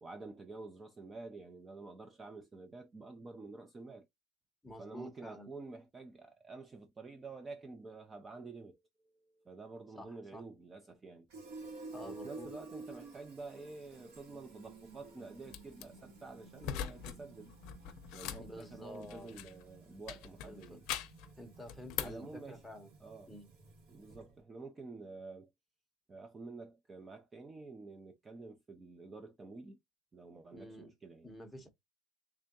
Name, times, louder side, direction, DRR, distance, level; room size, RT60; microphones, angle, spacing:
voice 1, 0.0-4.1 4.8-8.8 9.1-11.3 12.0-17.5 18.1-20.8 22.0-22.6 23.0-23.3 23.9-25.5 26.1-29.8 30.1-31.3, right 3 dB, 15° right, 0.4 m, -49 dB
voice 2, 4.6-5.5 9.9-10.4 11.9-12.5 18.4-19.3 20.4-20.8 21.4-22.9 23.3-23.5 30.5-30.9 31.2-31.7, left 1 dB, 5° left, 0.8 m, -49 dB
Fill (with liquid), 11.3-24.4, right 3 dB, 80° right, 2.2 m, -53 dB
sound 1, 15.5-15.8 16.6-17.2 17.5-19.6 20.1-21.3 21.7-22.3, left 10 dB, 60° left, 0.6 m, -41 dB
3.5 x 3.3 x 2.6 m
cardioid pair, 155°, 0 cm